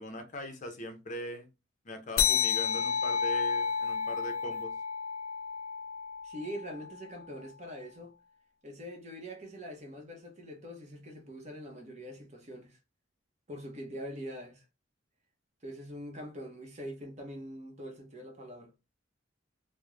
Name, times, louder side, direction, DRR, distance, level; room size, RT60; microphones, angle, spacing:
voice 1, 0.0-1.5 1.8-4.7, equal, 40° left, 0.5 m, -41 dB
sound 1, 2.2-7.1, left 7 dB, 90° left, 0.4 m, -31 dB
voice 2, 6.2-8.1 8.6-12.8 13.5-14.6 15.6-18.7, equal, 35° right, 0.7 m, -43 dB
2.4 x 2.0 x 3.0 m
head